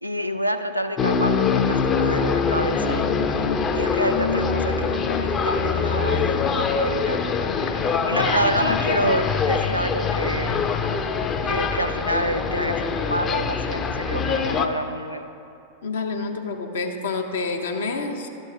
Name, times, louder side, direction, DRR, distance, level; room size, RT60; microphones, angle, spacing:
voice 1, 0.0-10.6 11.4-15.3, right 1 dB, 90° right, 7 dB, 0.4 m, -28 dB
sound 1, 1.0-14.7, left 5 dB, 25° left, 0.5 m, -23 dB
voice 2, 15.8-18.3, left 4 dB, 65° left, 4 dB, 0.7 m, -28 dB
12.0 x 5.3 x 4.7 m, 2.8 s
figure-of-eight pair, 90°, 0 cm